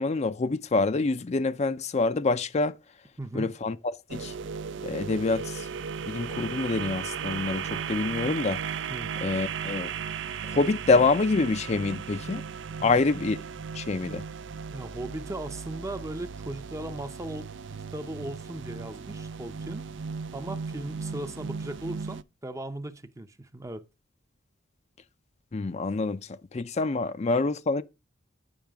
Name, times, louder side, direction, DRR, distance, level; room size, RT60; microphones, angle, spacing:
voice 1, 0.0-2.7 3.3-3.8 4.1-4.3 4.8-5.7 6.1-8.6 9.2-9.9 10.5-12.4 12.8-13.4 13.7-14.2 25.5-27.8, left 3 dB, 35° left, 0.4 m, -26 dB
voice 2, 3.2-3.5 8.9-9.1 12.8-13.0 14.7-19.9 20.3-23.8, right 1 dB, 15° right, 0.6 m, -38 dB
sound 1, 4.1-22.2, right 6 dB, 65° right, 0.4 m, -36 dB
8.9 x 5.8 x 3.4 m
head